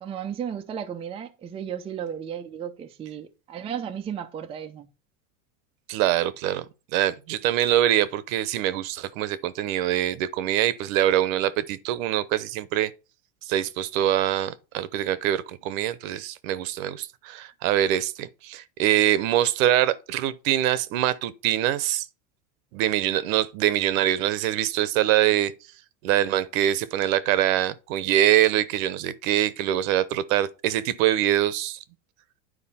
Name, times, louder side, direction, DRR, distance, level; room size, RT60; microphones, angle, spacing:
voice 1, 0.0-4.9, right 8 dB, 15° right, 0.5 m, -34 dB
voice 2, 5.9-6.6 6.9-12.9 13.5-22.0 22.7-25.5 26.0-31.8, right 12 dB, 65° right, 0.9 m, -24 dB
9.8 x 4.8 x 4.2 m
supercardioid pair, 145°, 43 cm